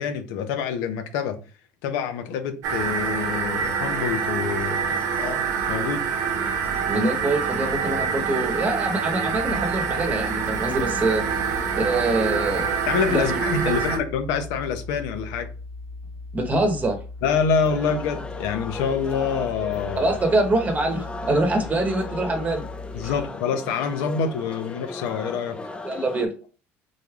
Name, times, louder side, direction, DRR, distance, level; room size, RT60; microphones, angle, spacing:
voice 1, 0.0-1.4 1.8-6.0 12.9-15.5 17.2-20.2 22.9-25.6, left 6 dB, 75° left, 0.6 m, -26 dB
sound 1, 2.6-14.0, right 6 dB, 65° right, 0.8 m, -26 dB
voice 2, 6.9-11.2 11.8-12.7 13.1-13.4 16.3-17.0 20.0-22.6 23.0-23.1 25.8-26.3, right 2 dB, 25° right, 1.0 m, -24 dB
sound 2, 9.3-23.2, left 3 dB, ahead, 1.1 m, -38 dB
sound 3, 17.6-26.3, left 3 dB, 15° left, 0.4 m, -37 dB
3.9 x 3.1 x 2.4 m
supercardioid pair, 95°, 6 cm